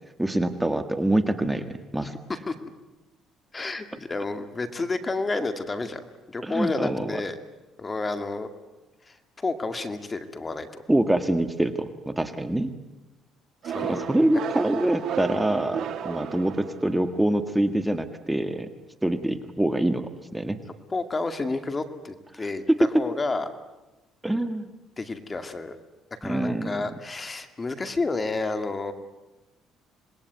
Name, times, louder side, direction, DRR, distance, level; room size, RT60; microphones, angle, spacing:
voice 1, 0.2-2.2 6.4-7.2 10.9-12.7 13.8-18.7 19.0-20.6 22.3-23.0 24.2-24.7 26.2-26.8, right 1 dB, 10° right, 8 dB, 1.8 m, -25 dB
voice 2, 2.0-2.5 3.5-6.0 6.3-7.4 7.8-8.5 9.1-10.8 13.6-14.0 20.9-22.6 23.0-23.4 25.0-25.8 26.2-28.9, left 3 dB, 25° left, 9 dB, 2.3 m, -30 dB
sound 1, 13.6-17.2, right 8 dB, 65° right, 1.7 m, -33 dB
26.5 x 21.0 x 9.5 m, 1.0 s
cardioid pair, 90°, 0 cm